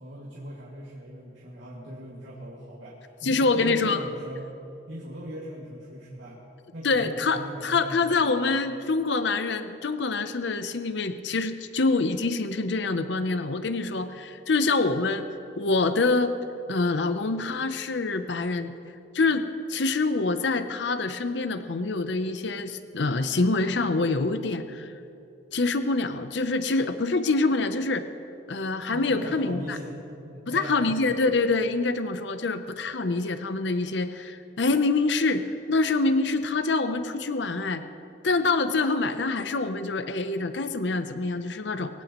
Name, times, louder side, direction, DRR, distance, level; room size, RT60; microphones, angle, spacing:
voice 1, 0.0-4.6 4.9-6.4 6.7-8.5 28.9-29.9 30.2-31.1, equal, 80° right, -5 dB, 2.4 m, -40 dB
voice 2, 3.2-4.0 6.8-15.3 15.6-16.3 16.7-18.7 19.1-24.9 25.5-28.1 28.5-29.8 30.5-37.8 38.2-41.9, left 3 dB, 70° left, 10 dB, 0.7 m, -26 dB
22.0 x 17.0 x 3.1 m, 2.7 s
head